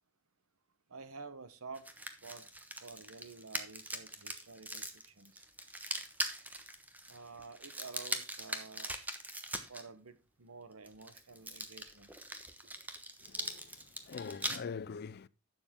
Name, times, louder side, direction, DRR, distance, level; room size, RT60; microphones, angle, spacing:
voice 1, 0.9-2.5 2.8-5.4 7.1-8.9 9.7-12.1, right 4 dB, 65° right, 1.1 m, -50 dB
sound 1, 1.7-9.8 10.9-14.6, right 1 dB, 10° right, 1.1 m, -41 dB
voice 2, 13.2-15.3, left 5 dB, 45° left, 0.4 m, -44 dB
11.5 x 7.2 x 3.6 m
head